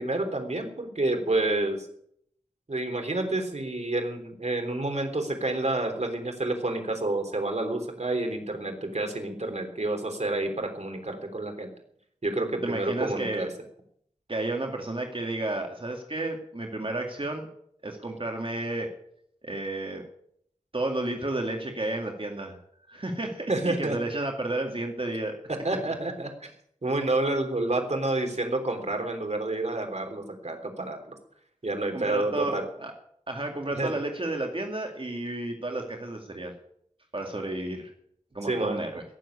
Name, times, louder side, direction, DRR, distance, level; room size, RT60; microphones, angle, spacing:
voice 1, 0.0-1.9 2.7-11.7 12.2-13.5 23.5-24.0 25.6-26.5 26.8-31.1 31.6-32.6 33.8-33.9 38.4-38.8, right 2 dB, 60° right, 4 dB, 3.6 m, -29 dB
voice 2, 12.6-13.5 14.3-17.5 17.8-18.9 19.4-20.0 20.7-22.6 22.9-25.3 31.9-32.9 33.3-36.5 37.1-37.9 38.3-39.0, right 2 dB, 45° right, 2 dB, 2.3 m, -32 dB
17.0 x 7.7 x 9.8 m, 0.70 s
wide cardioid pair, 60°, 13 cm